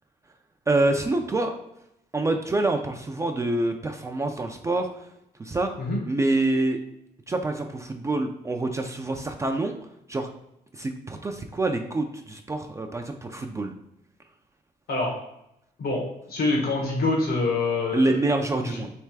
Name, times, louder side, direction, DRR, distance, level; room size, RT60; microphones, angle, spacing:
voice 1, 0.7-1.6 2.1-5.1 5.4-5.7 6.1-6.8 7.3-9.7 10.1-10.3 10.7-13.7 17.9-18.9, right 2 dB, 20° right, 4 dB, 0.3 m, -26 dB
voice 2, 16.3-18.2 18.6-18.8, left 2 dB, 75° left, -1 dB, 1.3 m, -25 dB
3.4 x 3.2 x 4.6 m, 0.82 s
cardioid pair, 125°, 16 cm